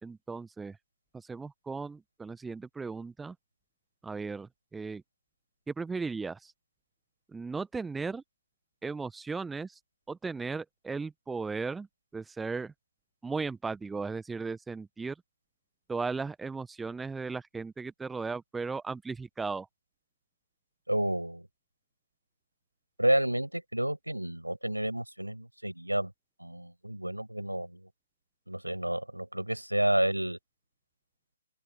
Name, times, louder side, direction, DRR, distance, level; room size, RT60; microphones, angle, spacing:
voice 1, 0.0-0.8 1.1-3.3 4.0-5.0 5.7-6.5 7.3-8.2 8.8-9.8 10.1-11.9 12.1-12.7 13.2-15.2 15.9-19.7, right 4 dB, 5° right, 1.1 m, -36 dB
voice 2, 20.9-21.4 23.0-26.1 26.4-27.8 28.5-30.4, right 1 dB, 85° right, 7.2 m, -30 dB
open air
figure-of-eight pair, 135°, 0 cm